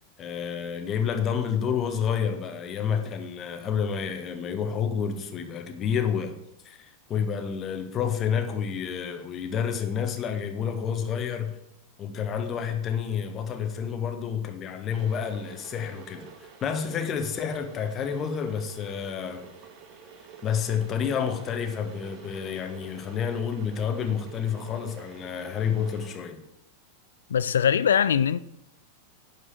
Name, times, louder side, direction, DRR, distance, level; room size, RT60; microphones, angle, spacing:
voice 1, 0.2-6.4 6.6-11.6 12.0-19.5 20.4-26.4, left 7 dB, 30° left, 1.4 m, -29 dB
Water / Boiling, 14.9-26.2, right 6 dB, 35° right, 1.7 m, -48 dB
voice 2, 27.3-28.4, left 8 dB, 65° left, 0.4 m, -22 dB
11.0 x 4.9 x 7.6 m
figure-of-eight pair, 90°, 0 cm